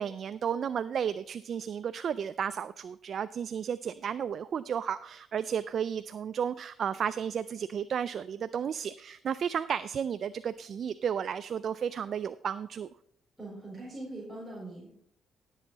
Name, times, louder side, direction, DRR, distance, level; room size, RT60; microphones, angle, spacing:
voice 1, 0.0-12.9, right 8 dB, 55° right, 14 dB, 0.3 m, -33 dB
voice 2, 13.4-14.9, right 2 dB, 5° right, -6 dB, 4.3 m, -41 dB
16.0 x 7.3 x 4.1 m, 0.72 s
cardioid pair, 90°, 0 cm